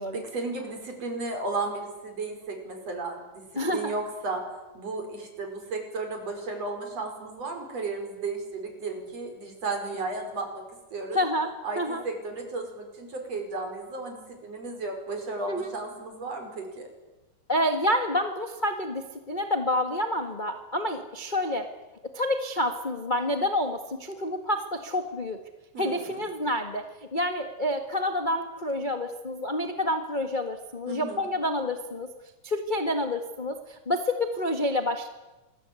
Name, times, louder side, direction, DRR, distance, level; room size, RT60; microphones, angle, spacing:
voice 1, 0.1-4.4 4.7-10.6 10.9-11.2 11.6-16.9 25.7-26.2 30.9-31.3, right 3 dB, 50° right, 4 dB, 6.2 m, -34 dB
voice 2, 3.5-3.9 11.1-11.5 11.8-12.0 15.5-15.7 17.5-21.7 22.1-25.4 25.8-32.1 32.4-35.1, left 1 dB, 25° left, 6 dB, 1.0 m, -28 dB
27.0 x 21.5 x 9.7 m, 1.1 s
omnidirectional pair, 3.8 m